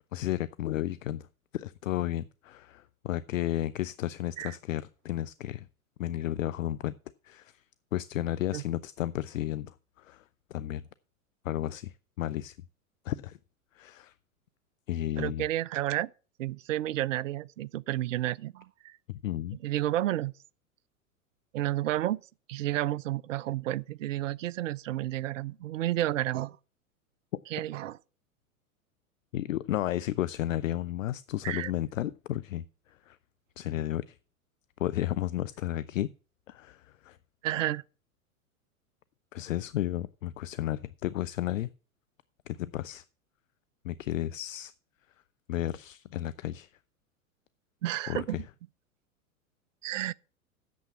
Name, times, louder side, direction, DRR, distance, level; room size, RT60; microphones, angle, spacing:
voice 1, 0.1-1.3 1.5-5.7 6.0-7.0 7.2-7.6 7.9-10.2 10.5-10.8 11.4-12.6 13.0-13.4 13.7-14.1 14.9-15.5 19.1-19.6 29.3-33.2 33.6-34.2 34.8-36.1 36.5-37.2 39.3-41.7 42.5-43.0 43.8-44.7 45.5-46.7 48.1-48.4, left 13 dB, 65° left, 0.5 m, -33 dB
voice 2, 15.2-16.1 16.4-19.0 19.6-20.3 21.5-22.2 22.5-26.6 27.5-28.0 31.4-31.7 37.4-37.8 47.8-48.4 49.8-50.1, right 14 dB, 60° right, 0.5 m, -31 dB
8.4 x 7.0 x 7.2 m
figure-of-eight pair, 95°, 44 cm